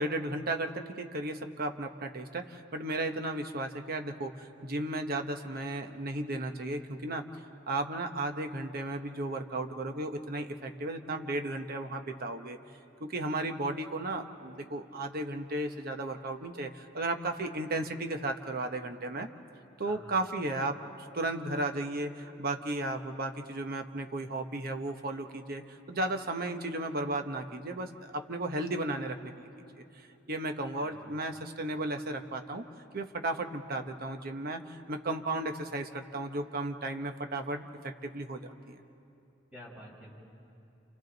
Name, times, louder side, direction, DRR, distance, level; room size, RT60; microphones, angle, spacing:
voice 1, 0.0-7.3 7.7-12.6 13.0-19.3 19.8-29.5 29.7-29.8 30.3-32.6 32.9-38.8, right 2 dB, 50° right, 6 dB, 1.0 m, -34 dB
voice 2, 30.8-31.1 39.5-40.1, equal, 5° right, -5 dB, 5.1 m, -49 dB
29.5 x 28.0 x 4.0 m, 2.8 s
head